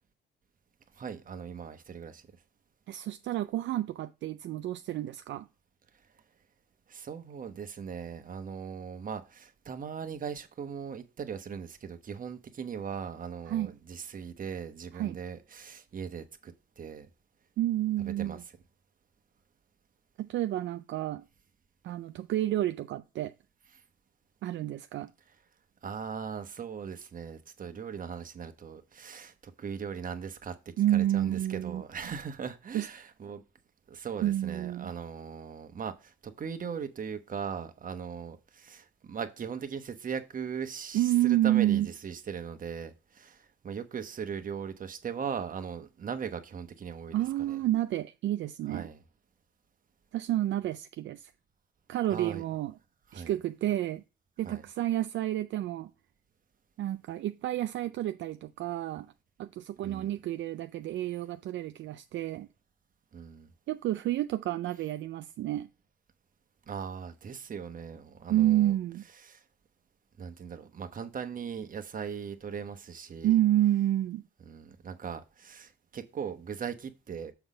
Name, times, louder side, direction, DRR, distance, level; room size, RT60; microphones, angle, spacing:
voice 1, 1.0-2.2 6.9-17.1 18.0-18.4 25.8-30.6 30.9-33.4 33.9-47.6 48.7-49.0 52.1-52.4 53.1-53.3 54.4-54.6 59.8-60.2 63.1-63.5 66.7-68.7 69.2-69.4 70.2-73.4 74.5-77.3, right 7 dB, 45° right, 1.1 m, -39 dB
voice 2, 2.9-5.5 13.5-13.7 14.9-15.2 17.6-18.4 20.2-21.2 21.8-23.3 24.4-25.1 30.8-31.8 32.7-32.9 34.2-34.9 40.9-41.9 47.1-48.9 50.1-51.3 51.9-52.8 53.1-54.0 54.4-55.9 56.8-59.1 59.4-62.5 63.7-65.7 68.3-69.0 73.2-74.2, right 13 dB, 70° right, 0.4 m, -29 dB
7.0 x 3.9 x 5.0 m
cardioid pair, 90°, 20 cm